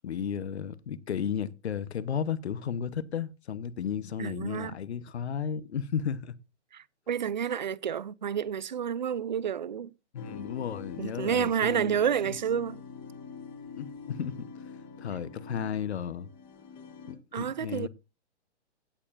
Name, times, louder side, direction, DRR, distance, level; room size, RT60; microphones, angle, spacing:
voice 1, 0.0-6.3 10.1-12.0 13.7-14.5 15.0-16.3 17.1-17.9, left 8 dB, 65° left, 1.1 m, -34 dB
voice 2, 4.2-4.7 6.7-9.9 11.0-12.8 17.3-17.9, right 8 dB, 40° right, 0.5 m, -30 dB
sound 1, 10.2-17.2, left 5 dB, 15° left, 1.4 m, -45 dB
16.5 x 6.8 x 2.6 m
hypercardioid pair, 175°, 35 cm